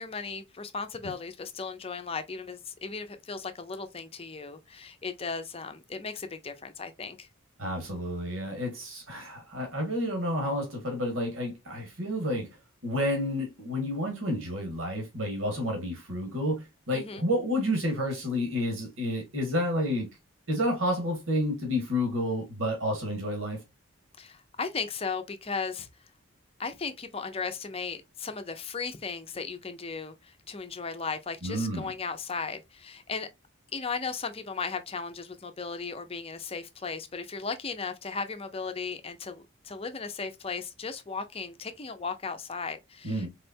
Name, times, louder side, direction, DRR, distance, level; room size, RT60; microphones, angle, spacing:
voice 1, 0.0-7.3 16.9-17.2 24.2-25.9 26.6-33.3 33.7-43.3, left 5 dB, 30° left, 0.6 m, -36 dB
voice 2, 7.6-12.5 12.8-20.1 20.5-23.6 31.4-31.9 43.0-43.3, equal, 75° right, 1.7 m, -30 dB
4.3 x 3.3 x 2.6 m
head